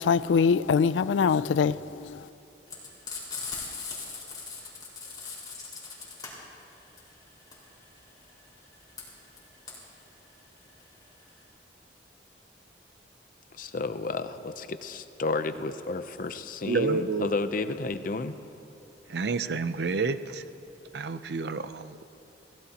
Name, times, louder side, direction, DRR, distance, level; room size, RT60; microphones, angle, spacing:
voice 1, 0.0-2.1, left 6 dB, 90° left, 17 dB, 0.4 m, -23 dB
Frying (food), 2.7-11.4, left 4 dB, 25° left, 4.8 m, -39 dB
voice 2, 13.6-18.3, left 3 dB, 50° left, 11 dB, 0.6 m, -32 dB
voice 3, 16.7-17.3 19.1-20.4 20.9-22.0, right 4 dB, 65° right, 12 dB, 0.6 m, -29 dB
28.5 x 17.0 x 2.9 m, 2.8 s
head